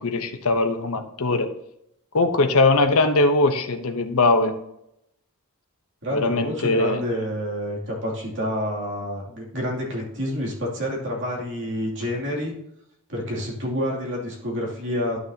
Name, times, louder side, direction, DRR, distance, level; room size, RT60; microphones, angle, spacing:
voice 1, 0.0-1.5 2.1-4.5 6.1-7.0, left 2 dB, 75° left, 7 dB, 0.8 m, -21 dB
voice 2, 6.0-12.5 13.1-15.2, equal, 55° right, -3 dB, 2.6 m, -28 dB
11.0 x 6.5 x 2.8 m, 0.79 s
head